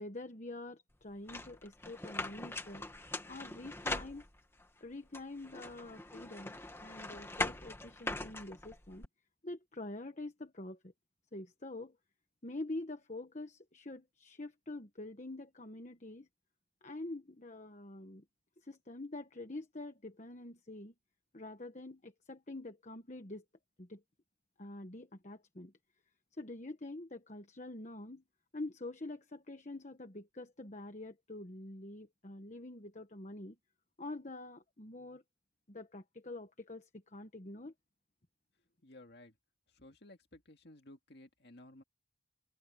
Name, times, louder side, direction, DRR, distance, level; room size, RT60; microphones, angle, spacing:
voice 1, 0.0-2.8 3.3-4.2 4.8-9.0 9.4-10.9 11.3-12.0 12.4-16.3 16.8-18.2 18.6-20.9 21.3-23.4 23.8-24.0 24.6-25.7 26.4-28.2 28.5-33.5 34.0-35.2 35.7-37.7, left 2 dB, 40° left, 1.3 m, -46 dB
sound 1, 1.3-4.6 5.1-9.1, left 2 dB, 15° left, 1.6 m, -41 dB
voice 2, 38.8-39.4 39.7-41.8, left 1 dB, 60° left, 2.3 m, -56 dB
head